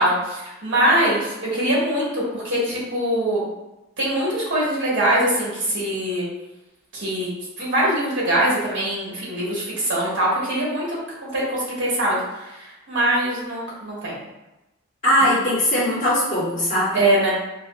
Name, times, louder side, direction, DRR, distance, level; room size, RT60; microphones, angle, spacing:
voice 1, 0.0-3.4 4.0-6.2 6.9-7.3 7.6-12.2 12.4-14.2 15.2-15.3 16.9-17.3, right 1 dB, 60° right, -6 dB, 1.2 m, -22 dB
voice 2, 15.0-17.0, equal, 35° left, -11 dB, 1.0 m, -20 dB
3.3 x 2.3 x 2.2 m, 0.98 s
head